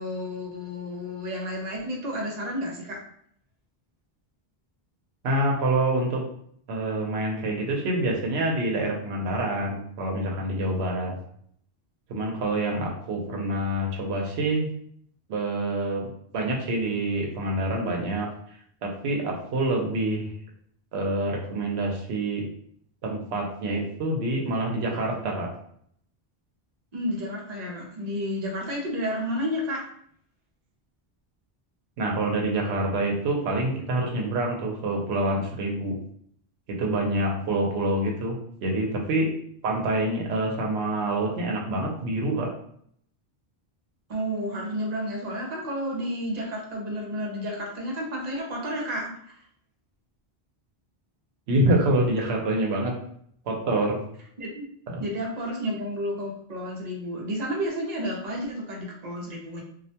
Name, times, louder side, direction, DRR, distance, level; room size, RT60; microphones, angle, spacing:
voice 1, 0.0-3.0 26.9-29.8 44.1-49.4 54.4-54.6 55.0-59.6, equal, 45° right, -2 dB, 0.7 m, -31 dB
voice 2, 5.2-6.2 6.7-11.1 12.1-14.7 15.3-16.1 16.3-18.3 18.8-20.3 20.9-22.4 23.0-25.5 32.0-35.9 36.7-38.3 38.6-39.3 39.6-42.5 51.5-52.9 53.5-54.0 54.9-55.0, right 1 dB, 80° right, 0 dB, 0.9 m, -26 dB
2.4 x 2.1 x 2.7 m, 0.66 s
omnidirectional pair, 1.1 m